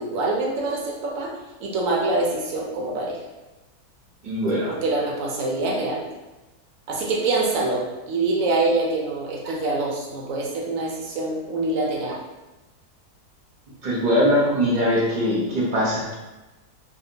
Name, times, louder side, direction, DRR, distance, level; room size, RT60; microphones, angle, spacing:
voice 1, 0.0-1.3 1.6-3.2 4.7-6.0 6.9-12.2, right 2 dB, 70° right, -1 dB, 0.9 m, -25 dB
voice 2, 4.2-4.7 13.8-16.1, equal, 45° right, -6 dB, 0.6 m, -21 dB
2.7 x 2.1 x 2.7 m, 1.1 s
omnidirectional pair, 1.7 m